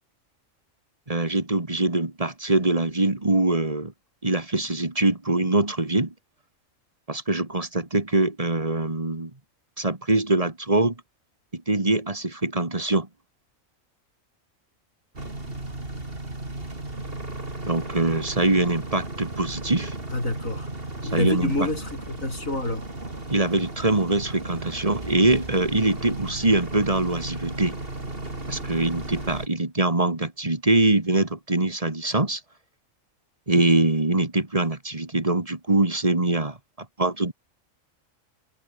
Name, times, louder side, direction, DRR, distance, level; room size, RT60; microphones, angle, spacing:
voice 1, 1.1-3.9 4.2-6.1 7.1-9.3 9.8-10.9 11.5-13.1 17.6-19.9 21.1-21.5 23.3-27.8 28.5-32.4 33.5-36.6 37.0-37.3, right 2 dB, 25° right, 2.2 m, -23 dB
sound 1, 15.2-29.5, right 2 dB, 45° right, 4.3 m, -35 dB
voice 2, 20.1-20.7 21.0-22.9, left 2 dB, 80° left, 7.7 m, -28 dB
omnidirectional pair, 1.4 m